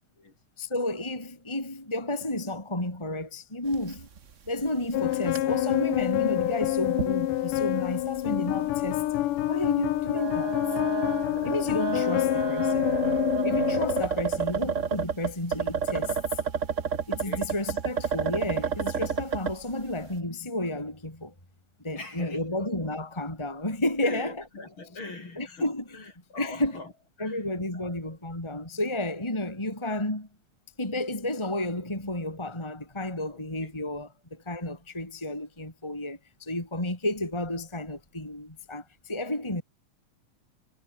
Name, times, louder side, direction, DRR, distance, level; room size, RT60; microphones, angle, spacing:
voice 1, 0.6-4.1 4.5-9.1 9.5-10.8 11.4-13.0 13.4-16.2 17.1-21.3 21.8-24.4 25.4-26.0 26.4-26.8 27.2-30.3 30.8-39.6, left 1 dB, 10° left, 3.7 m, -32 dB
sound 1, 3.7-4.2 4.5-4.6 5.0-5.4 6.0-6.1 7.0-7.1 7.5-7.6 8.8-8.9 10.0-19.6, right 6 dB, 85° right, 0.6 m, -30 dB
sound 2, 4.9-14.0, left 14 dB, 80° left, 2.6 m, -27 dB
voice 2, 17.2-17.5 22.0-22.7 24.0-26.9 27.2-27.9 33.3-33.8, left 3 dB, 40° left, 5.5 m, -43 dB
omnidirectional pair, 3.7 m